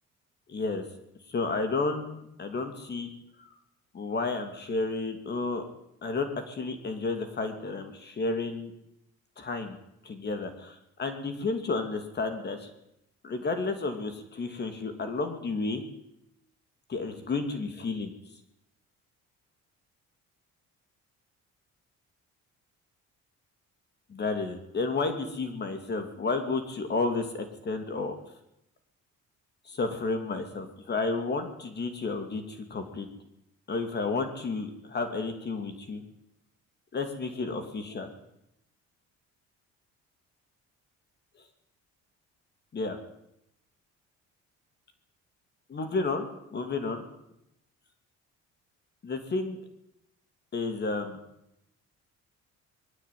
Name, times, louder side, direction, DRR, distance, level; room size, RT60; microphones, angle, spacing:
voice 1, 0.5-0.8 1.3-3.1 3.9-5.6 6.0-8.7 9.4-9.8 10.0-12.7 13.2-15.8 16.9-18.1 24.1-28.2 29.7-33.1 33.7-36.0 36.9-38.1 42.7-43.0 45.7-47.0 49.0-49.6 50.5-51.2, left 3 dB, 35° left, 7 dB, 2.8 m, -31 dB
21.5 x 16.5 x 9.5 m, 0.81 s
cardioid pair, 150°, 30 cm